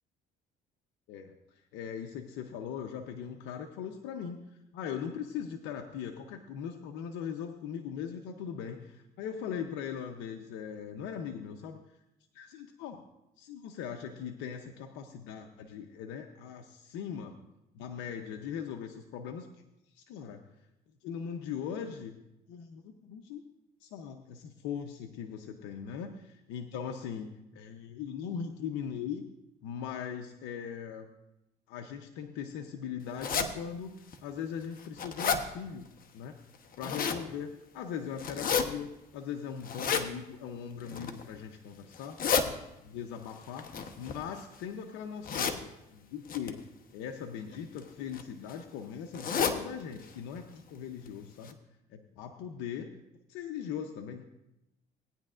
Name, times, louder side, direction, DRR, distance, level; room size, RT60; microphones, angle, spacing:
voice 1, 1.1-11.8 12.3-13.1 13.4-17.4 17.7-19.5 19.9-20.4 21.0-22.2 22.5-23.4 23.8-29.2 29.6-31.1 31.7-33.9 34.2-35.9 36.1-36.4 36.8-42.2 42.4-45.6 45.9-46.6 46.9-51.6 51.9-52.9 53.3-54.2, left 7 dB, 85° left, 4 dB, 0.7 m, -40 dB
sound 1, 33.2-33.5 34.1-34.2 34.6-35.4 36.5-37.2 38.2-38.6 39.6-40.1 40.8-41.2 41.9-42.4 43.6-44.6 45.2-45.6 46.3-46.5 47.5-47.8 48.1-48.2 48.5-48.6 49.1-49.6 50.0-50.1 50.4-50.5 51.1-51.2 51.5-51.6, left 6 dB, 50° left, 1.0 m, -30 dB
17.5 x 9.7 x 2.5 m, 0.91 s
cardioid pair, 95°, 19 cm